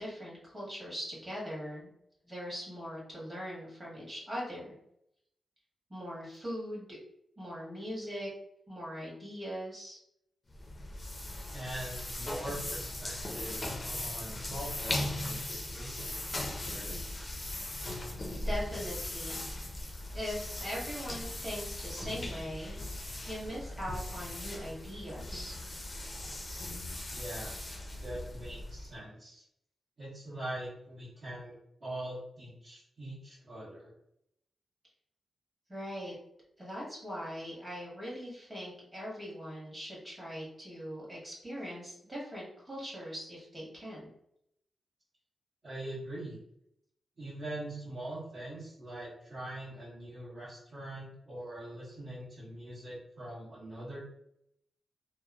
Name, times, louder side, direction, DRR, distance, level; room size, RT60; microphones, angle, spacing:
voice 1, 0.0-1.9 2.3-4.8 5.9-7.0 7.4-8.3 8.7-10.0 18.0-19.8 20.1-22.8 23.2-25.6 35.7-36.1 36.6-44.1, equal, 20° right, -6 dB, 1.4 m, -41 dB
sound 1, 10.5-29.0, left 1 dB, 25° left, 0.5 m, -39 dB
voice 2, 11.5-17.0 27.1-27.5 28.0-29.4 30.0-33.9 45.6-46.4 47.2-54.0, right 1 dB, 50° right, -11 dB, 1.2 m, -43 dB
2.9 x 2.0 x 2.4 m, 0.76 s
wide cardioid pair, 115°, 0 cm